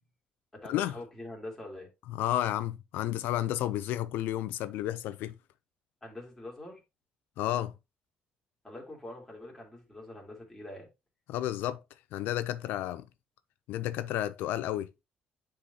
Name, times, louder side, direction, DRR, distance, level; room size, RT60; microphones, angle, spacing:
voice 1, 0.5-1.9 6.0-6.8 8.6-10.9, left 1 dB, 10° left, 2.6 m, -44 dB
voice 2, 2.1-5.4 7.4-7.7 11.3-11.8 12.1-13.0 13.7-14.9, left 13 dB, 85° left, 0.4 m, -31 dB
9.8 x 3.8 x 2.7 m
cardioid pair, 130°, 3 cm